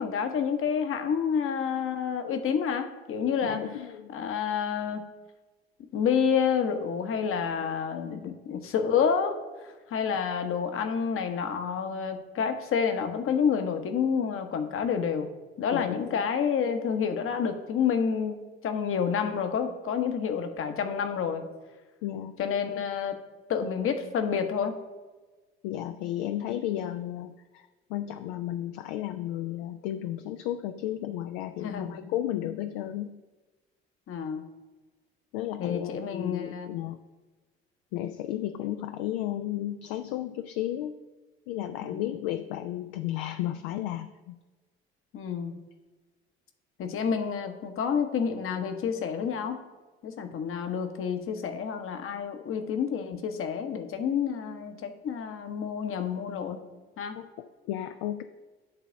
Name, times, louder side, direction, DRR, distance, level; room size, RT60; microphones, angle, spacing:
voice 1, 0.0-3.6 4.1-5.0 5.9-15.3 15.6-18.4 18.6-21.4 22.4-23.1 23.5-24.8 31.6-31.9 34.1-34.4 35.6-36.7 41.8-42.0 45.1-45.6 46.8-49.6 50.0-56.6 57.0-57.2, left 7 dB, 40° left, 7 dB, 1.0 m, -29 dB
voice 2, 3.4-4.1 8.1-8.3 15.7-16.2 22.0-22.4 25.6-33.2 35.3-37.0 37.9-41.0 41.5-44.4 57.2-58.2, left 12 dB, 60° left, 10 dB, 0.5 m, -33 dB
10.0 x 4.0 x 5.7 m, 1.2 s
figure-of-eight pair, 55°, 31 cm